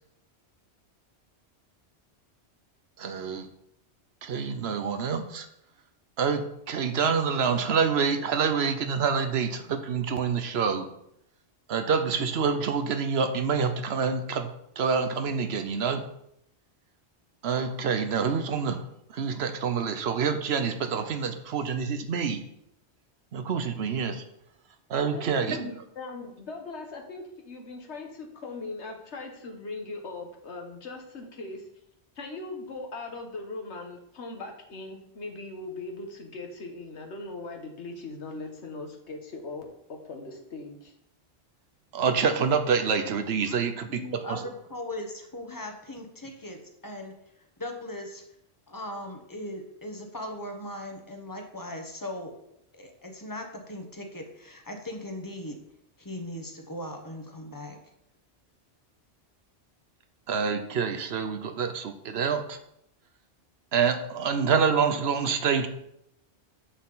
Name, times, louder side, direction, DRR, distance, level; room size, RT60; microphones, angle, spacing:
voice 1, 3.0-3.5 4.2-5.5 6.2-10.9 11.7-14.5 14.8-16.0 17.4-18.8 19.1-22.4 23.3-24.2 24.9-25.7 41.9-44.0 44.3-44.4 60.3-62.6 63.7-65.7, right 6 dB, 70° right, 9 dB, 1.0 m, -27 dB
voice 2, 24.9-31.7 32.1-40.9, left 3 dB, 80° left, 3 dB, 1.5 m, -40 dB
voice 3, 43.9-47.1 47.6-48.2 48.7-52.3 52.7-55.6 56.0-57.8, left 1 dB, 20° left, 4 dB, 1.0 m, -39 dB
7.4 x 6.5 x 3.9 m, 0.77 s
omnidirectional pair, 1.1 m